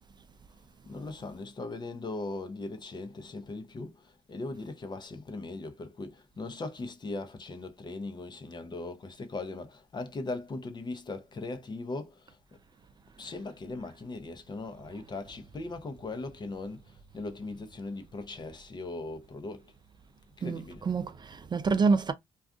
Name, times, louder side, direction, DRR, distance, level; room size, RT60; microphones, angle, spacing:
voice 1, 0.9-12.4 13.2-19.7 20.4-20.8, left 2 dB, 35° left, 0.7 m, -39 dB
voice 2, 20.4-22.1, right 4 dB, 35° right, 0.4 m, -27 dB
2.4 x 2.3 x 3.5 m
cardioid pair, 90°, 13 cm